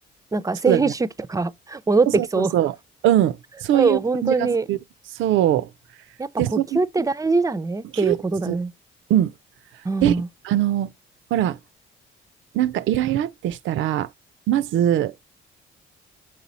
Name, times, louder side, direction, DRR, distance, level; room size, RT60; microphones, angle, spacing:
voice 1, 0.3-2.1 2.3-2.5 3.7-4.7 6.2-8.7 9.8-10.3, right 3 dB, 15° right, 0.4 m, -23 dB
voice 2, 2.1-2.8 3.0-4.8 5.2-5.7 6.4-6.8 7.9-8.2 8.5-8.6 9.1-9.3 10.0-10.2 10.4-10.9 11.3-11.6 12.5-14.1 14.5-15.1, right 12 dB, 80° right, 0.4 m, -21 dB
6.4 x 4.2 x 4.0 m
cardioid pair, 90°, 20 cm